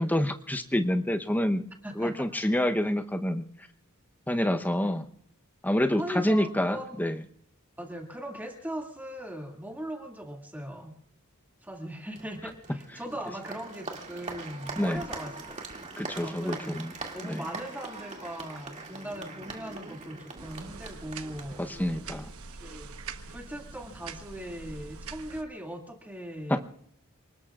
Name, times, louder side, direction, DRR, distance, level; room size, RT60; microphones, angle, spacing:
voice 1, 0.0-1.6 2.0-3.4 4.3-5.0 5.6-7.2 14.8-15.0 16.0-16.9 17.2-17.4 21.6-22.3 26.5-26.6, left 1 dB, 10° left, 6 dB, 0.9 m, -27 dB
voice 2, 1.8-2.3 6.0-7.1 7.8-10.9 11.6-15.6 16.1-16.8 17.1-21.7 22.6-23.0 23.3-26.6, equal, 10° right, 1 dB, 2.2 m, -39 dB
Applause, 12.1-22.2, right 3 dB, 30° right, 2.4 m, -42 dB
sound 1, 20.4-25.4, right 4 dB, 75° right, 1.2 m, -44 dB
29.0 x 19.5 x 2.5 m, 0.72 s
head